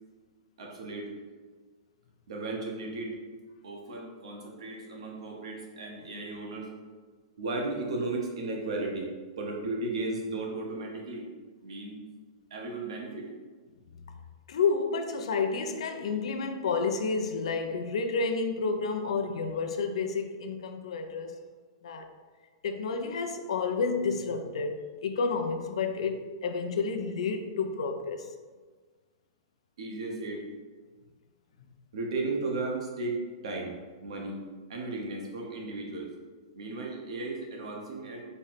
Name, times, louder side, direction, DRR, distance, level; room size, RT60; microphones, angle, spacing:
voice 1, 0.6-1.1 2.3-3.2 3.6-6.7 7.4-11.3 11.6-12.0 12.5-13.3 29.8-30.5 31.9-33.7 34.0-34.4 34.7-36.1 36.5-38.3, right 2 dB, 80° right, 0 dB, 0.9 m, -35 dB
voice 2, 14.5-21.3 21.8-22.1 22.6-28.3, left 4 dB, 80° left, 6 dB, 0.4 m, -30 dB
4.1 x 2.0 x 4.0 m, 1.4 s
hypercardioid pair, 160°, 3 cm